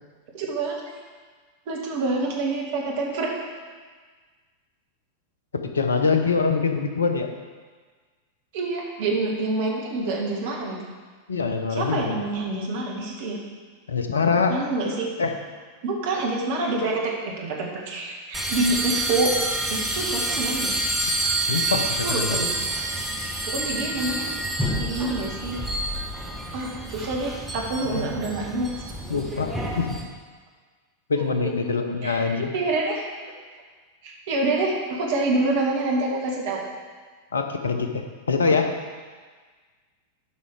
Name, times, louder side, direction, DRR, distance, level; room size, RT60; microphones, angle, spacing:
voice 1, 0.3-0.7 1.7-3.3 8.5-10.8 11.7-13.4 14.5-15.1 15.8-19.3 19.7-20.7 22.0-22.5 23.5-24.3 24.8-25.6 26.5-28.7 31.2-31.7 32.0-33.0 34.0-36.6, right 2 dB, 50° right, -1 dB, 2.0 m, -27 dB
voice 2, 5.5-7.3 11.3-12.1 13.9-14.6 15.2-15.3 21.5-22.4 27.9-28.1 29.1-29.5 29.8-30.0 31.1-32.5 37.3-38.7, left 4 dB, 70° left, 6 dB, 0.8 m, -24 dB
sound 1, 18.3-30.0, right 1 dB, ahead, 1.5 m, -28 dB
11.5 x 5.6 x 4.8 m, 1.5 s
figure-of-eight pair, 90°, 0 cm